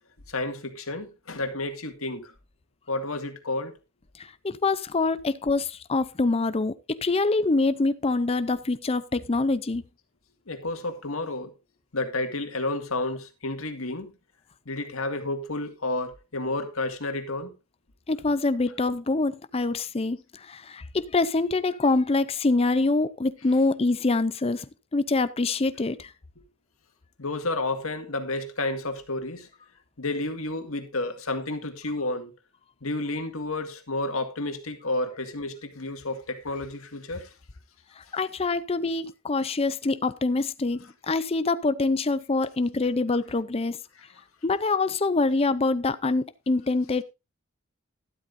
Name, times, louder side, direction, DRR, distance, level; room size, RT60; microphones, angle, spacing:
voice 1, 0.3-2.3 2.9-3.7 10.5-11.5 11.9-14.1 14.7-17.5 27.2-29.5 30.0-32.3 32.8-37.3, left 2 dB, 75° left, 2.0 m, -31 dB
voice 2, 4.2-9.8 18.1-24.7 24.9-26.1 38.0-43.8 44.4-47.0, left 3 dB, 30° left, 0.5 m, -25 dB
12.5 x 12.0 x 2.6 m
head